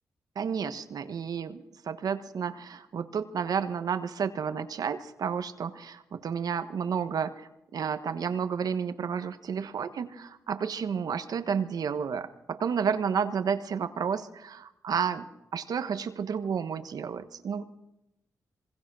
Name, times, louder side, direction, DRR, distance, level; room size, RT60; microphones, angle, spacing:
voice 1, 0.3-17.6, right 7 dB, 70° right, 10 dB, 1.3 m, -31 dB
26.5 x 20.5 x 6.2 m, 0.89 s
cardioid pair, 75°, 7 cm